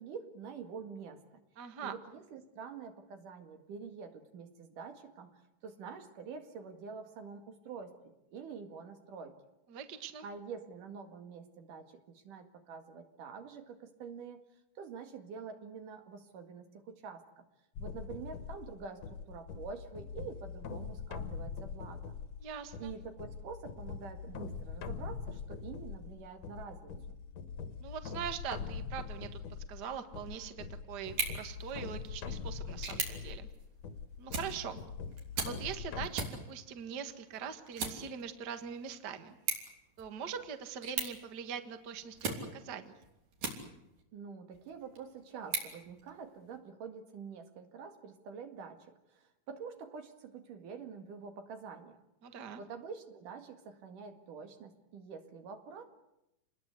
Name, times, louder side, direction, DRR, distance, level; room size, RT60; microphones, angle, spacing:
voice 1, 0.0-1.4 1.8-8.0 8.3-9.4 10.2-14.4 14.8-17.4 17.8-22.1 22.8-27.2 44.1-52.0 52.6-55.9, right 5 dB, 80° right, 6 dB, 3.6 m, -47 dB
voice 2, 1.6-1.9 9.7-10.3 22.4-22.9 27.8-29.4 29.7-33.5 34.2-34.8 35.4-39.4 40.0-42.9 52.2-52.6, right 7 dB, 40° right, 8 dB, 1.7 m, -42 dB
sound 1, 17.8-36.1, left 5 dB, 60° left, 2.4 m, -43 dB
sound 2, 31.0-44.0 44.5-46.6, right 4 dB, 65° right, 4.6 m, -42 dB
28.0 x 20.5 x 8.2 m, 0.87 s
omnidirectional pair, 3.6 m